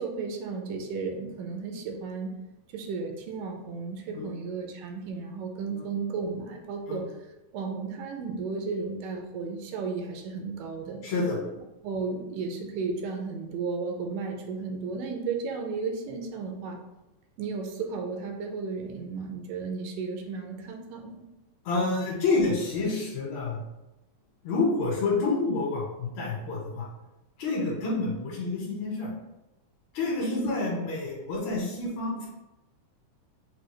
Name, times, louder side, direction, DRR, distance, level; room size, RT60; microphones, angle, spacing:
voice 1, 0.0-2.3 2.7-7.1 7.5-11.0 11.8-16.8 17.4-21.2 30.3-30.5, right 4 dB, 85° right, 3 dB, 2.2 m, -34 dB
voice 2, 11.0-11.4 21.7-23.6 24.4-26.9 27.4-29.1 29.9-32.3, left 3 dB, 65° left, -4 dB, 2.3 m, -28 dB
6.3 x 2.3 x 3.2 m, 0.97 s
omnidirectional pair, 3.8 m